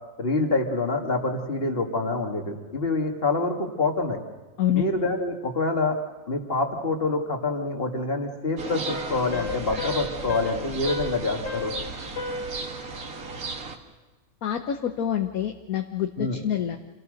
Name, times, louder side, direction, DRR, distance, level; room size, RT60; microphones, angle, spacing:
voice 1, 0.2-4.2 4.7-6.0 6.3-11.7 16.2-16.4, left 3 dB, 30° left, 2 dB, 2.4 m, -26 dB
sound 1, 8.6-13.8, right 4 dB, 50° right, 1.9 m, -35 dB
sound 2, 8.7-13.6, left 3 dB, 70° left, 4.8 m, -35 dB
voice 2, 14.4-16.8, left 10 dB, 55° left, 6 dB, 1.3 m, -26 dB
27.5 x 17.5 x 6.6 m, 1.2 s
omnidirectional pair, 2.1 m